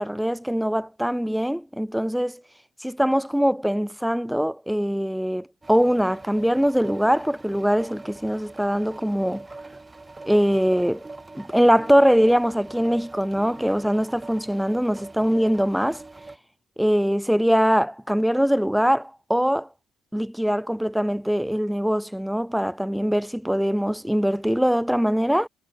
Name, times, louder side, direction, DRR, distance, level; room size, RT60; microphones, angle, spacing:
voice 1, 0.0-2.4 2.8-9.4 10.3-11.0 11.4-16.0 16.8-19.7 20.1-25.5, equal, ahead, 0.8 m, -22 dB
sound 1, 5.6-16.4, right 3 dB, 20° right, 1.6 m, -42 dB
cardioid pair, 80°, 0 cm